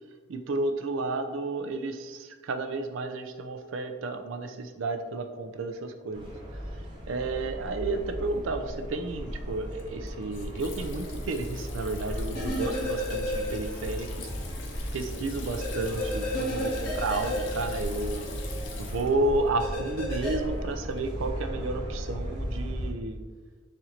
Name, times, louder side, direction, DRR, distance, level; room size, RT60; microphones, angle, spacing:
voice 1, 0.3-6.3 7.1-14.3 14.9-18.3 18.8-23.2, right 2 dB, 90° right, 8 dB, 0.4 m, -32 dB
sound 1, 6.1-22.9, equal, 25° right, 0.9 m, -37 dB
Water tap faucet / Sink (filling or washing), 8.7-21.3, left 2 dB, 70° left, 0.6 m, -42 dB
sound 2, 12.3-14.0 14.3-14.4 15.6-18.4 19.6-20.3, equal, 50° left, 1.4 m, -33 dB
4.2 x 2.5 x 4.3 m, 1.4 s
head